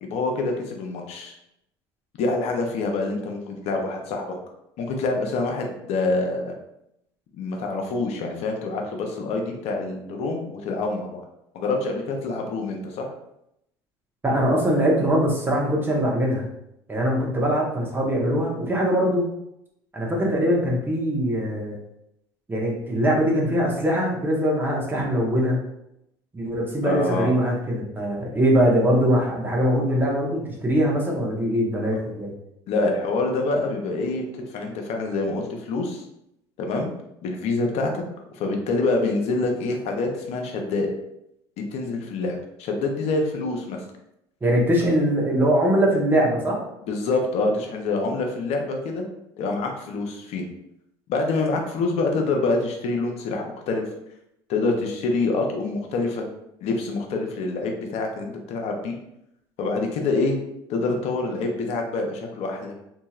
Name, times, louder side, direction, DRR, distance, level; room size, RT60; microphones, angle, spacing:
voice 1, 0.0-1.3 2.2-4.3 4.8-6.5 7.3-11.2 11.5-13.1 26.8-27.3 32.7-34.3 34.5-36.0 36.6-36.9 37.2-38.0 38.4-40.9 41.7-43.8 46.8-49.0 49.4-50.5 51.1-53.8 54.5-56.3 56.6-59.0 59.6-60.4 60.7-62.7, left 3 dB, 60° left, 2 dB, 0.7 m, -26 dB
voice 2, 14.2-16.5 16.9-19.3 19.9-21.8 22.5-25.6 26.3-32.3 44.4-46.6, equal, 15° right, -3 dB, 1.1 m, -22 dB
2.8 x 2.7 x 2.4 m, 0.80 s
hypercardioid pair, 80°, 12 cm